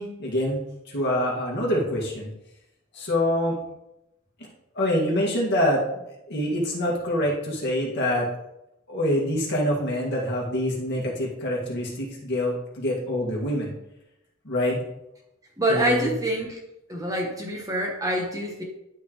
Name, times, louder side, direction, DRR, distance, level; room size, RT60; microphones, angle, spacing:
voice 1, 0.0-2.3 2.9-3.6 4.7-6.0 6.3-8.3 8.9-13.7 14.4-14.8 15.7-16.1, left 1 dB, 50° left, -3 dB, 2.0 m, -25 dB
voice 2, 15.6-16.6 16.9-18.6, right 1 dB, 15° right, -1 dB, 1.0 m, -26 dB
11.5 x 3.9 x 3.1 m, 0.87 s
head